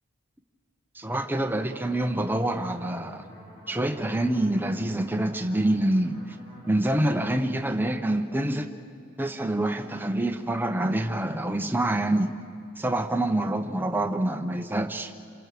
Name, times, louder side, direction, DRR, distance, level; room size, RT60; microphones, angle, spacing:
voice 1, 0.9-3.2 3.7-6.2 6.7-8.7 9.2-12.4 12.8-15.1, right 1 dB, 10° right, 6 dB, 0.9 m, -26 dB
sound 1, 1.7-7.3, left 1 dB, 30° left, 4.6 m, -48 dB
27.5 x 27.5 x 6.8 m, 2.5 s
head